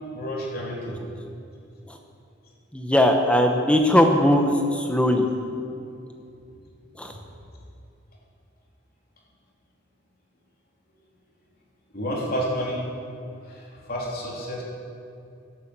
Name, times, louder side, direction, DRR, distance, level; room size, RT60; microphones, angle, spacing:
voice 1, 0.1-1.0 7.1-7.2 11.9-12.8 13.4-14.6, equal, 50° left, -3 dB, 3.4 m, -30 dB
voice 2, 2.7-5.3 7.0-7.1, left 1 dB, 5° left, 3 dB, 0.9 m, -19 dB
14.5 x 11.5 x 6.1 m, 2.5 s
head